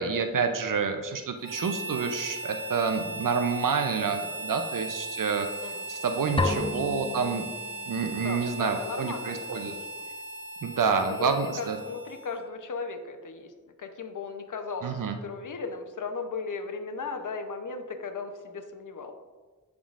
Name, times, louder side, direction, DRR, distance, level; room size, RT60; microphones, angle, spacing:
voice 1, 0.0-5.5 5.9-7.4 7.9-9.7 10.6-11.8 14.8-15.2, right 5 dB, 65° right, 7 dB, 0.6 m, -28 dB
Harmonica, 1.4-12.5, right 2 dB, 40° right, 1.4 m, -38 dB
sound 1, 6.4-8.2, left 3 dB, 15° left, 0.4 m, -31 dB
voice 2, 6.5-6.8 8.2-9.9 11.0-13.5 13.8-19.1, left 4 dB, 60° left, 6 dB, 0.8 m, -37 dB
11.0 x 3.7 x 2.5 m, 1.3 s
cardioid pair, 50°, 35 cm